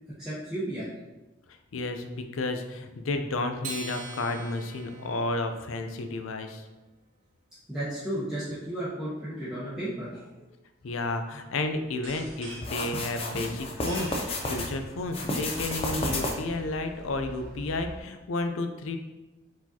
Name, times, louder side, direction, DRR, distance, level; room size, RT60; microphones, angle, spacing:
voice 1, 0.2-0.9 7.7-10.4, right 1 dB, 5° right, -12 dB, 0.9 m, -33 dB
voice 2, 1.5-6.7 10.8-19.0, left 2 dB, 90° left, 7 dB, 0.5 m, -32 dB
Acoustic guitar, 3.6-6.3, right 3 dB, 40° right, 0.5 m, -42 dB
sound 1, 11.9-18.0, right 1 dB, 75° right, 1.1 m, -45 dB
sound 2, 12.6-14.7 15.1-16.6, left 2 dB, 30° left, 0.5 m, -31 dB
4.8 x 4.0 x 2.8 m, 1.1 s
head